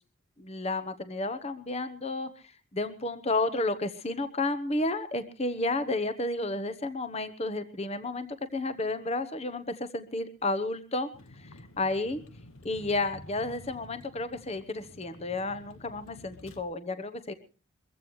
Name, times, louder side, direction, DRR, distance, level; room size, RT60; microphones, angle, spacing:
voice 1, 0.4-2.3 2.7-11.1 11.8-12.2 12.6-17.3, left 2 dB, 30° left, 11 dB, 1.0 m, -31 dB
Vehicle, 11.1-16.6, left 1 dB, 80° left, 1.4 m, -51 dB
23.0 x 15.0 x 3.2 m, 0.35 s
head